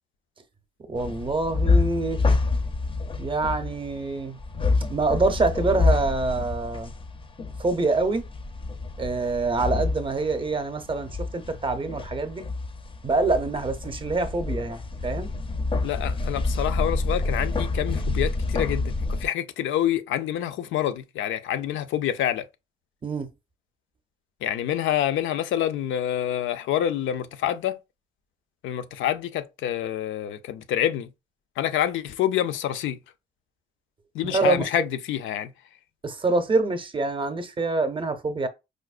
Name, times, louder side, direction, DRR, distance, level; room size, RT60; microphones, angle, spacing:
voice 1, 0.9-2.2 3.2-4.4 4.9-6.9 7.6-8.2 9.0-12.5 13.0-15.3 23.0-23.3 34.3-34.7 36.0-38.5, right 3 dB, 25° right, 0.6 m, -25 dB
sound 1, 1.0-19.3, left 3 dB, 25° left, 0.5 m, -28 dB
voice 2, 15.8-22.5 24.4-27.8 28.6-31.1 31.6-33.0 34.1-35.5, left 11 dB, 80° left, 0.5 m, -27 dB
4.9 x 2.0 x 2.4 m
cardioid pair, 90°, 20 cm